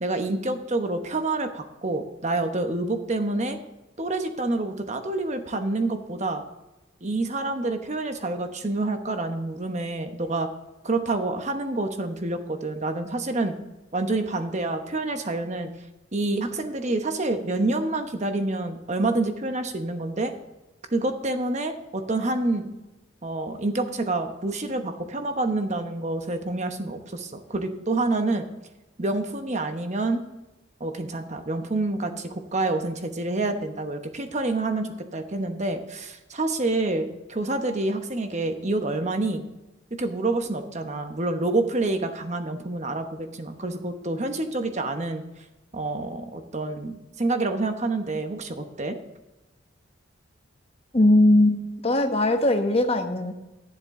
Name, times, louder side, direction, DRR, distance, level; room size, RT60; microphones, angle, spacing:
voice 1, 0.0-3.6 4.0-6.4 7.0-10.5 10.8-13.5 13.9-15.7 16.1-20.3 20.9-22.7 23.2-28.5 29.0-30.2 30.8-39.4 39.9-45.2 45.7-49.0, right 2 dB, 35° right, 7 dB, 1.0 m, -27 dB
voice 2, 50.9-53.3, left 1 dB, 30° left, 5 dB, 1.0 m, -20 dB
11.5 x 10.0 x 3.7 m, 1.0 s
head